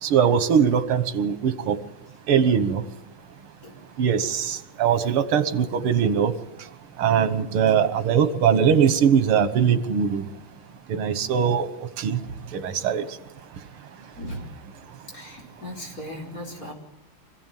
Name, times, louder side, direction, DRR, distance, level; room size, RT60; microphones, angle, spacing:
voice 1, 0.0-1.8 2.3-2.8 4.0-6.3 7.0-10.2 10.9-11.7 12.0-12.2 12.5-13.1, right 7 dB, 90° right, 11 dB, 2.1 m, -21 dB
voice 2, 14.1-14.5 15.1-16.7, left 1 dB, 40° left, -1 dB, 5.0 m, -37 dB
25.5 x 16.0 x 9.1 m, 0.98 s
omnidirectional pair, 2.3 m